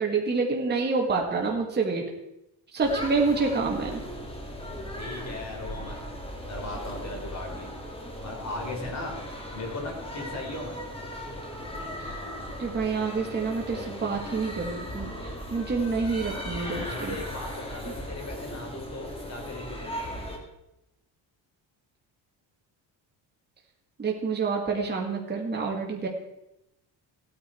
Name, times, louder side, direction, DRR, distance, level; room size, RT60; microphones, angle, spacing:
voice 1, 0.0-2.0 2.7-4.0 12.0-12.1 12.6-17.2 24.0-26.1, right 4 dB, 25° right, 0 dB, 2.0 m, -28 dB
sound 1, 2.8-20.4, equal, 15° left, 2.1 m, -37 dB
voice 2, 5.0-6.2 6.5-7.7 8.2-9.2 9.5-10.8 16.8-19.9, left 2 dB, 40° left, 1 dB, 4.1 m, -37 dB
16.0 x 9.7 x 4.5 m, 0.87 s
cardioid pair, 140°, 43 cm